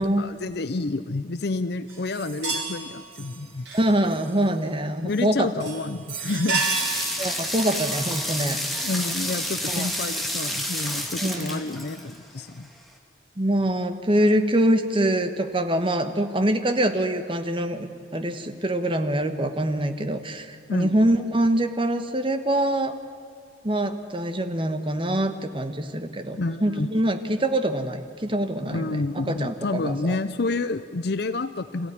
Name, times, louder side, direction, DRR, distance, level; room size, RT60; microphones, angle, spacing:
voice 1, 0.2-3.7 5.0-6.6 8.8-12.7 20.7-20.9 26.3-27.0 28.6-31.9, left 3 dB, 60° left, 12 dB, 0.6 m, -29 dB
sound 1, 1.9-4.6 5.1-5.3 5.6-9.1 9.7-9.9 10.8-10.9, right 3 dB, 65° right, 5.2 m, -33 dB
voice 2, 3.7-5.5 7.2-8.6 9.7-9.9 11.2-11.6 13.4-22.9 23.6-30.2, right 1 dB, 30° right, 8 dB, 1.3 m, -24 dB
sound 2, 6.6-12.4, equal, ahead, 2.0 m, -30 dB
27.0 x 15.5 x 9.9 m, 2.3 s
head